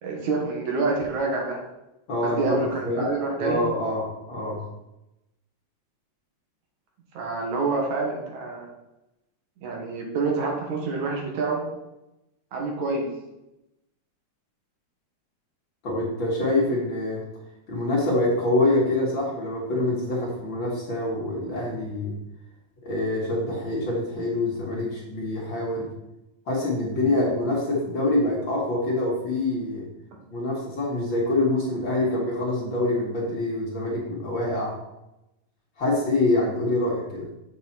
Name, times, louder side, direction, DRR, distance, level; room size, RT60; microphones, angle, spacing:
voice 1, 0.0-1.6 2.2-3.6 7.1-8.7 9.6-11.6 12.5-13.1, right 3 dB, 75° right, 0 dB, 2.9 m, -27 dB
voice 2, 2.1-2.6 2.9-3.1 3.4-4.6 15.8-17.2 17.7-22.1 22.8-25.9 26.5-29.8 30.3-34.7 35.8-37.3, left 2 dB, 45° left, -4 dB, 2.1 m, -25 dB
7.3 x 7.1 x 4.1 m, 0.91 s
omnidirectional pair, 3.4 m